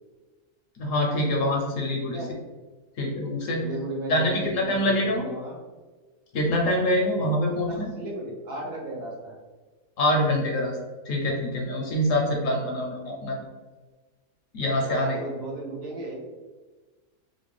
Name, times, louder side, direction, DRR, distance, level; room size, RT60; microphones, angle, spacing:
voice 1, 0.8-2.2 3.0-3.6 4.1-5.3 6.3-7.9 10.0-10.7 11.1-13.4 14.5-15.2, left 1 dB, 65° left, 0 dB, 0.8 m, -25 dB
voice 2, 3.5-5.5 7.5-9.3 12.6-12.7 14.8-16.1, right 2 dB, 75° right, -3 dB, 1.6 m, -35 dB
3.1 x 2.7 x 3.1 m, 1.3 s
omnidirectional pair, 1.7 m